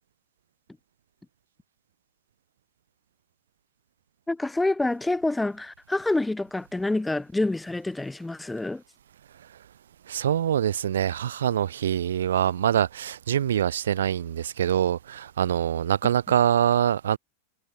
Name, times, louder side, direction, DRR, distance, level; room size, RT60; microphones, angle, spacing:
voice 1, 4.3-8.8, left 2 dB, 5° left, 6.0 m, -27 dB
voice 2, 10.1-17.2, right 10 dB, 65° right, 5.4 m, -24 dB
figure-of-eight pair, 90°, 0 cm